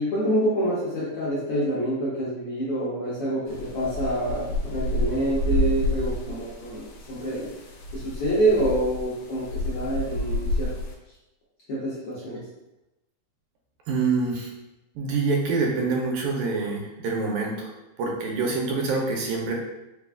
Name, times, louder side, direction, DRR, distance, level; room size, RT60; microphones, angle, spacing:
voice 1, 0.0-7.5 7.9-10.7 11.7-12.4, right 1 dB, 70° left, -8 dB, 1.4 m, -27 dB
sound 1, 3.5-10.9, left 1 dB, 85° left, 1.3 m, -29 dB
voice 2, 13.9-14.5 15.0-17.7 18.0-19.5, right 4 dB, 85° right, -1 dB, 2.1 m, -26 dB
4.7 x 2.3 x 3.4 m, 0.96 s
omnidirectional pair, 3.5 m